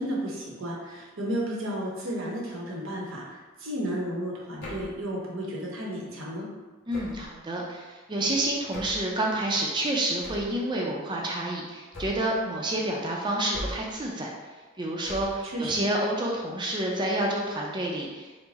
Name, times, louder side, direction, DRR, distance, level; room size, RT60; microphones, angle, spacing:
voice 1, 0.0-6.5 15.4-15.9, equal, 85° right, -4 dB, 1.0 m, -33 dB
sound 1, 4.6-5.0 6.9-7.4 8.7-9.1 10.2-10.6 11.9-12.4 13.5-14.0 15.1-15.5, left 1 dB, 60° left, 1.1 m, -39 dB
voice 2, 6.9-14.3 14.8-18.4, right 1 dB, 25° right, -2 dB, 0.4 m, -29 dB
4.4 x 2.0 x 4.0 m, 1.3 s
head